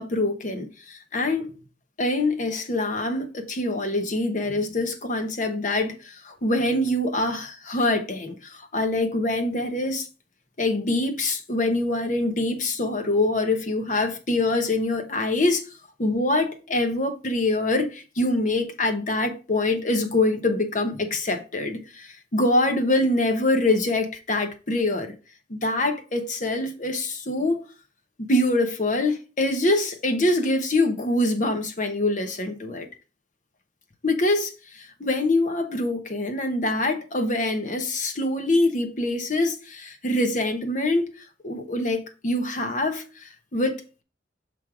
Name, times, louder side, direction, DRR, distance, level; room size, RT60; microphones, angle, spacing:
voice 1, 0.0-1.5 2.0-10.1 10.6-15.6 16.0-25.1 25.5-27.6 28.2-32.9 34.0-41.1 41.4-44.0, left 2 dB, 45° left, 1.1 m, -24 dB
7.4 x 3.3 x 4.8 m
head